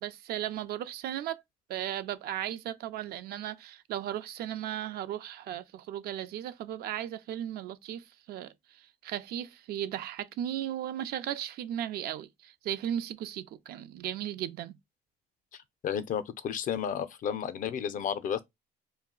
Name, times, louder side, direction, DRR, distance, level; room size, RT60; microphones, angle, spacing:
voice 1, 0.0-1.4 1.7-14.8, right 11 dB, 70° right, 0.4 m, -36 dB
voice 2, 15.8-18.4, left 8 dB, 50° left, 0.4 m, -32 dB
2.3 x 2.1 x 3.6 m
cardioid pair, 110°, 17 cm